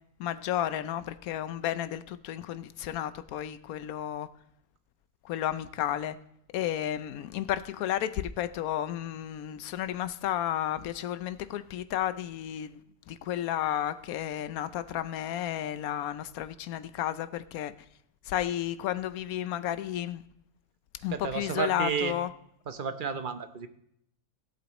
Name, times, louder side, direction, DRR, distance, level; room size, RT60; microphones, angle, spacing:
voice 1, 0.2-4.3 5.2-6.2 6.5-12.8 13.1-17.7 18.2-20.2 21.0-22.3, left 11 dB, 85° left, 1.1 m, -32 dB
voice 2, 21.1-22.1 22.7-23.7, right 6 dB, 45° right, 0.8 m, -31 dB
17.0 x 8.2 x 3.0 m
omnidirectional pair, 1.5 m